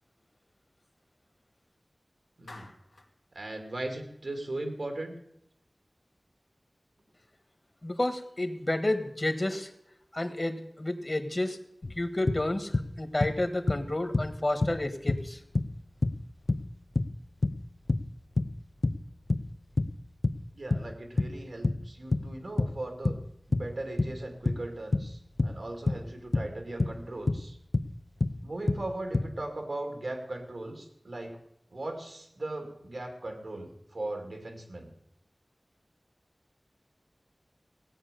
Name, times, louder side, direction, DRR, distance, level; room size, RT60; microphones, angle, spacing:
voice 1, 2.4-2.7 3.3-5.2 20.5-23.2 23.5-27.6 28.4-31.4 31.7-34.9, right 2 dB, 85° right, 4 dB, 2.4 m, -38 dB
Clapping, 2.5-3.2, left 2 dB, 90° left, 1.9 m, -49 dB
voice 2, 7.8-9.7 10.1-11.6 11.9-15.4, left 1 dB, 40° left, 9 dB, 1.4 m, -30 dB
sound 1, 11.8-12.9 13.2-14.4 14.6-20.4 20.7-27.9 28.2-29.3, left 2 dB, 70° left, 0.6 m, -28 dB
17.0 x 8.6 x 6.8 m, 0.76 s
wide cardioid pair, 55°, 0 cm